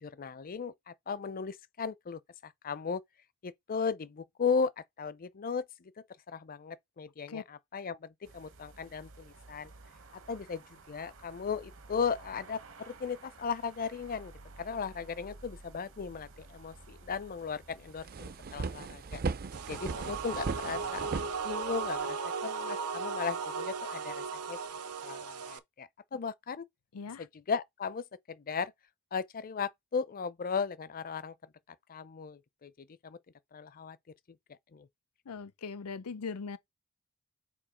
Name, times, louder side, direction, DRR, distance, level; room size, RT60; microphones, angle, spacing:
voice 1, 0.0-3.0 3.4-5.9 6.3-9.7 10.3-14.3 14.6-19.2 19.7-21.0 21.4-24.6 25.0-26.7 27.2-28.7 29.1-31.3 31.9-33.2 33.5-34.0 34.7-34.9, left 5 dB, 40° left, 0.5 m, -36 dB
sound 1, 8.2-21.0, right 3 dB, 65° right, 1.1 m, -54 dB
sound 2, 17.4-17.5 17.8-22.0, right 4 dB, 45° right, 0.5 m, -37 dB
sound 3, 19.5-25.6, right 5 dB, 85° right, 0.7 m, -36 dB
voice 2, 26.9-27.3 35.3-36.6, left 5 dB, 85° left, 0.6 m, -40 dB
6.9 x 2.8 x 5.0 m
head